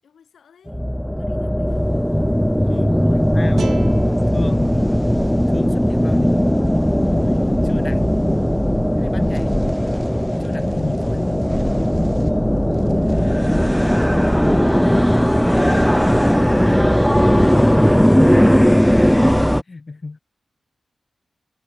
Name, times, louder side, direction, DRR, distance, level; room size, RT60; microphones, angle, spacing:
voice 1, 0.0-0.9 1.2-1.9 2.7-3.3 12.3-13.4 14.9-15.6 16.4-17.0 18.7-19.0, left 7 dB, 90° left, 7.1 m, -54 dB
sound 1, 0.7-19.6, equal, 5° left, 0.4 m, -17 dB
sound 2, 1.7-19.5, left 2 dB, 25° left, 2.6 m, -37 dB
voice 2, 2.6-2.9 3.3-3.8 4.3-4.9 5.5-6.7 7.1-8.1 9.0-9.6 10.4-11.5 18.1-20.2, left 3 dB, 40° left, 1.8 m, -32 dB
sound 3, 3.6-6.7, right 6 dB, 70° right, 3.0 m, -36 dB
cardioid pair, 70°, 0 cm